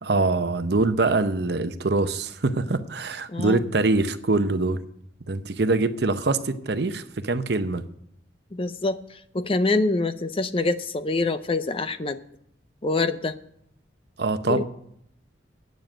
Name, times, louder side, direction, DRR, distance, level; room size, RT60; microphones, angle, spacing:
voice 1, 0.0-4.8 5.3-7.8 14.2-14.6, right 3 dB, 60° right, 0.8 m, -24 dB
voice 2, 3.3-3.6 8.5-12.2 12.8-13.3 14.5-14.6, left 3 dB, 30° left, 0.6 m, -25 dB
9.2 x 7.3 x 8.8 m
head